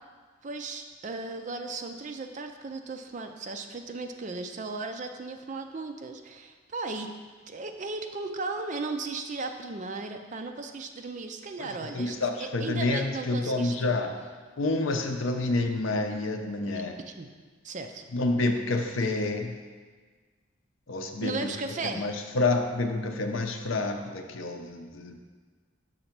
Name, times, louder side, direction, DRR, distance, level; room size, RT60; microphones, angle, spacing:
voice 1, 0.4-7.1 7.5-14.0 16.6-16.8 17.2-17.3 17.6-18.0 21.2-22.1, right 3 dB, 35° right, 6 dB, 0.4 m, -36 dB
voice 2, 11.9-14.2 14.6-17.0 18.1-19.6 20.9-21.3 21.8-25.2, left 2 dB, 75° left, 5 dB, 0.6 m, -28 dB
6.5 x 4.0 x 5.9 m, 1.5 s
head